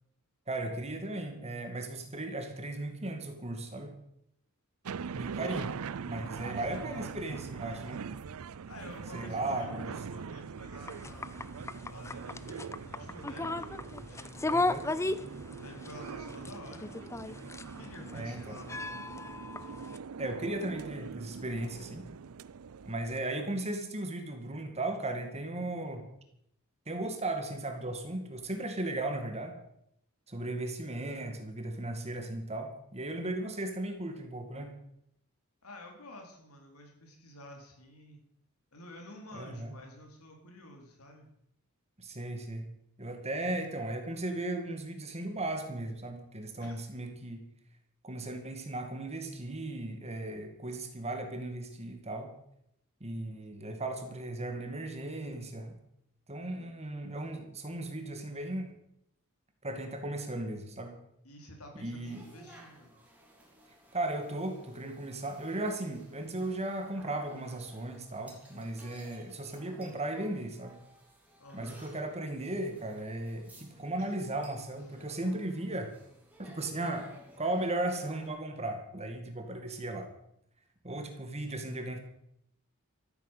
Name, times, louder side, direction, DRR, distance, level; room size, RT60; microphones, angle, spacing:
voice 1, 0.5-3.9 5.1-5.7 6.1-8.1 9.1-9.9 14.5-14.9 18.1-18.6 20.2-22.1 22.8-26.1 26.9-29.6 30.3-34.7 39.3-39.7 42.0-42.7 43.0-47.4 48.0-52.3 53.0-55.7 56.3-58.7 59.6-61.0 61.8-62.2 63.9-70.8 71.5-75.9 76.4-77.1 77.4-80.1 80.8-82.0, right 2 dB, 30° right, 5 dB, 2.2 m, -36 dB
sound 1, 4.9-23.2, right 6 dB, 75° right, 0.5 m, -43 dB
voice 2, 6.2-7.5 8.7-11.6 11.8-14.5 15.5-17.2 17.6-19.1 35.6-38.2 38.7-41.3 46.6-46.8 61.2-63.0 71.4-71.8 74.0-74.2, left 1 dB, 80° left, 2 dB, 4.3 m, -50 dB
sound 2, 10.8-20.0, left 2 dB, 15° left, 0.5 m, -36 dB
sound 3, 62.0-78.3, right 1 dB, 5° right, 3.7 m, -57 dB
14.0 x 9.6 x 8.3 m, 0.76 s
head